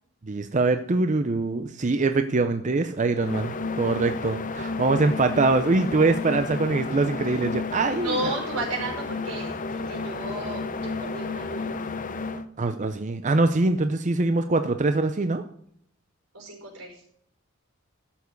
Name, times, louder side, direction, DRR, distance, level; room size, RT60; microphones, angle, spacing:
voice 1, 0.3-8.3 12.6-15.4, right 3 dB, 35° right, 8 dB, 0.6 m, -23 dB
sound 1, 3.1-12.4, left 3 dB, 40° left, 0.7 m, -32 dB
voice 2, 7.9-11.7 16.3-17.0, right 1 dB, 90° right, 1 dB, 4.9 m, -33 dB
12.5 x 7.2 x 5.3 m, 0.70 s
head